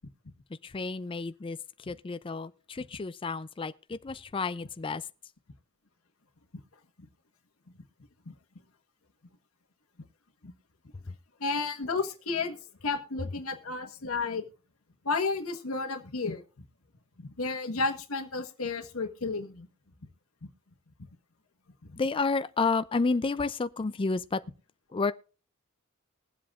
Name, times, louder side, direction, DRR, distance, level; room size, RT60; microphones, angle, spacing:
voice 1, 0.6-5.1 11.1-11.2 22.0-24.4 24.9-25.1, left 4 dB, 25° left, 0.4 m, -31 dB
voice 2, 11.4-14.4 15.0-16.4 17.2-19.7, left 4 dB, 90° left, 1.4 m, -32 dB
21.0 x 7.7 x 2.4 m
head